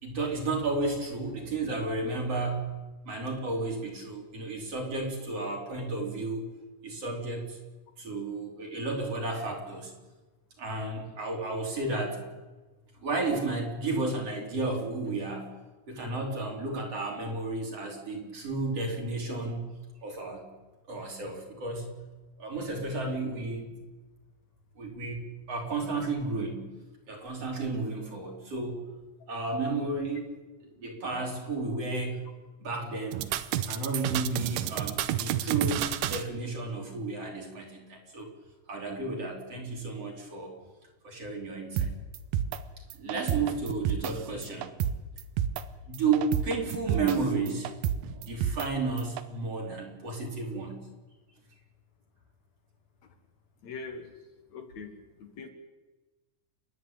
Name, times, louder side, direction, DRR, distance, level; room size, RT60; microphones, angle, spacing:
voice 1, 0.0-2.7 3.1-6.5 6.8-7.6 8.0-9.9 10.6-12.2 13.0-15.5 15.9-19.7 20.0-20.5 20.9-21.9 22.4-23.7 24.8-26.6 27.1-28.8 29.3-30.3 30.8-32.2 32.6-33.2 33.7-38.3 38.7-40.5 41.0-41.9 42.9-44.7 45.9-47.8 48.1-50.8, right 3 dB, 50° right, 0 dB, 4.7 m, -32 dB
sound 1, 33.1-36.2 41.8-41.9 42.1-42.6 42.9-44.1 44.4-44.9 45.2-45.6 45.9-47.2 47.5-48.7 49.0-49.2, right 11 dB, 90° right, 2.5 m, -29 dB
voice 2, 53.6-54.1 54.5-54.9 55.2-55.5, left 4 dB, 60° left, 5 dB, 2.9 m, -41 dB
30.0 x 10.5 x 8.9 m, 1.2 s
omnidirectional pair, 3.7 m